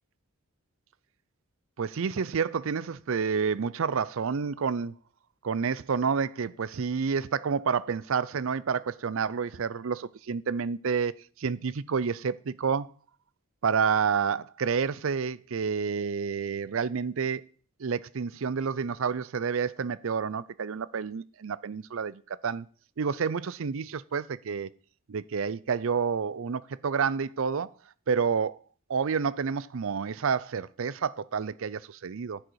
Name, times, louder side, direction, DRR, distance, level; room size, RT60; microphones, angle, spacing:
voice 1, 1.8-4.9 5.4-12.9 13.6-17.4 17.8-22.7 23.0-24.7 25.1-27.7 28.1-28.6 28.9-32.4, right 6 dB, 60° right, 0.5 m, -29 dB
10.5 x 7.7 x 4.6 m
head